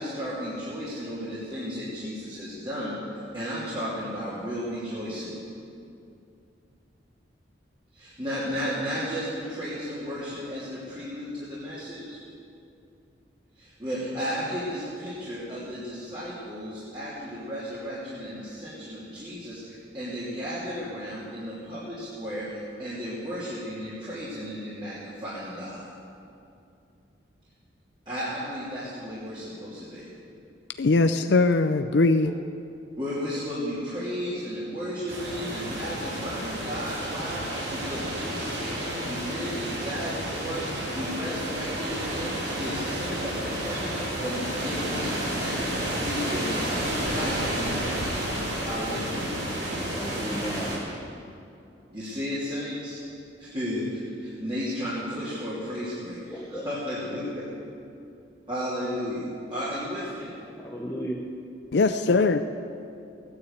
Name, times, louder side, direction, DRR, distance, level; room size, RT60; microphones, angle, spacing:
voice 1, 0.0-5.4 7.9-12.2 13.6-25.9 28.0-30.0 33.0-49.5 51.9-53.0 53.4-57.4 58.5-59.2 59.5-60.3, equal, 25° right, -10 dB, 3.0 m, -34 dB
voice 2, 30.8-32.3 61.7-62.4, left 3 dB, 65° left, 8 dB, 0.5 m, -21 dB
sound 1, 35.1-50.8, right 1 dB, 70° right, 4.5 m, -31 dB
voice 3, 49.9-50.8 56.3-56.9 60.6-61.3, equal, 15° left, -2 dB, 0.9 m, -35 dB
18.0 x 9.8 x 8.2 m, 2.6 s
head